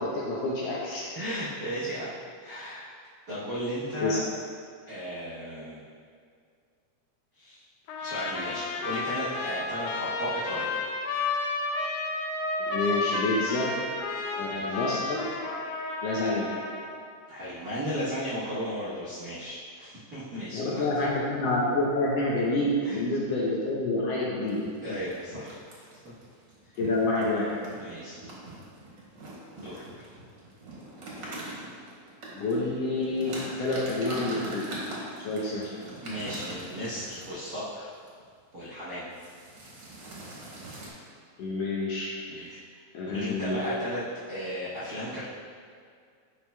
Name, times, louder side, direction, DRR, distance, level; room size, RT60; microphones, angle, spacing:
voice 1, 0.0-1.1 4.0-4.2 12.7-13.7 14.4-15.2 16.0-16.5 20.5-24.6 26.8-27.5 32.3-34.7 35.2-35.7 41.4-42.1 42.9-43.6, left 2 dB, 75° left, -4 dB, 1.5 m, -28 dB
voice 2, 1.1-2.2 2.4-2.8 3.3-4.2 4.9-5.8 7.3-7.6 8.0-10.8 14.4-14.8 17.3-21.1 22.8-23.0 24.8-25.6 26.0-26.1 27.8-28.2 29.6-29.9 36.0-37.9 38.5-39.1 42.3-42.6 43.1-45.2, equal, 75° right, -11 dB, 0.9 m, -35 dB
Trumpet, 7.9-17.0, left 3 dB, 90° left, 2.1 m, -32 dB
sound 1, 24.5-37.7 38.1-38.3 38.5-38.8 39.1-40.9, right 1 dB, 50° right, 1.5 m, -43 dB
10.5 x 4.5 x 2.2 m, 2.2 s
omnidirectional pair, 3.4 m